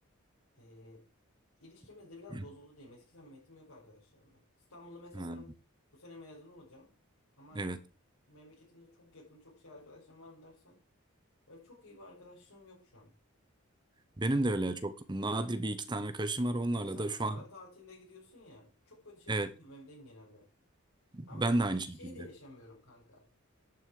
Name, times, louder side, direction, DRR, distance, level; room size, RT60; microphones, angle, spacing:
voice 1, 0.5-1.0 1.6-4.4 4.7-5.5 5.9-6.9 7.4-7.7 8.3-10.8 11.5-13.1 16.7-20.5 21.3-23.2, left 2 dB, 85° left, 5.5 m, -53 dB
voice 2, 14.2-17.4 19.3-19.5 21.1-22.3, right 2 dB, 20° right, 0.8 m, -32 dB
11.0 x 6.2 x 4.7 m
head